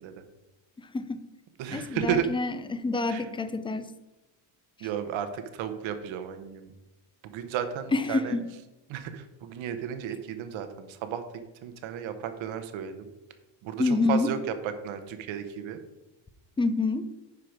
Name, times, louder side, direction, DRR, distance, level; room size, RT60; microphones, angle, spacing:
voice 1, 0.8-1.3 1.7-3.9 7.9-8.4 13.8-14.3 16.6-17.1, left 3 dB, 10° left, 11 dB, 0.4 m, -27 dB
voice 2, 1.6-2.3 3.1-3.2 4.8-6.7 7.2-8.4 8.9-13.1 13.6-14.4 14.6-15.8, right 9 dB, 70° right, 9 dB, 1.1 m, -33 dB
11.0 x 4.9 x 5.1 m, 1.1 s
cardioid pair, 125°, 49 cm